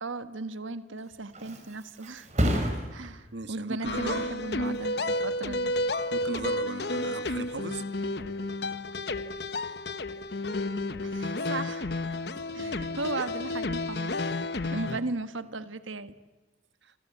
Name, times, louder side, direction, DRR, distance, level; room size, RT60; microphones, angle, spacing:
voice 1, 0.0-2.3 2.9-5.7 11.0-11.9 12.5-14.4 14.7-16.1, right 3 dB, 90° right, 11 dB, 1.4 m, -36 dB
Thump thud, 0.8-8.3 8.7-9.1, equal, 35° right, 4.9 m, -35 dB
voice 2, 3.3-4.3 6.1-7.8 12.6-13.0, right 3 dB, 65° right, 11 dB, 1.4 m, -37 dB
sound 1, 3.8-15.0, left 2 dB, 55° left, 1.1 m, -31 dB
26.5 x 26.0 x 8.5 m, 1.2 s
head